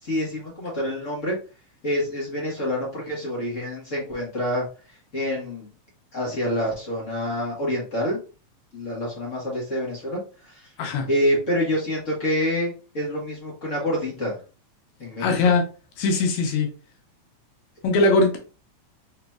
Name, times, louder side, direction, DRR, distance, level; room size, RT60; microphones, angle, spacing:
voice 1, 0.0-1.4 1.8-4.7 5.1-5.7 6.1-8.2 8.7-10.7 11.1-14.4 15.0-15.4, equal, 40° left, -4 dB, 1.1 m, -27 dB
voice 2, 15.2-15.6 16.0-16.7 17.8-18.4, left 3 dB, 80° left, 3 dB, 2.1 m, -20 dB
4.3 x 3.9 x 2.3 m, 0.35 s
omnidirectional pair, 3.4 m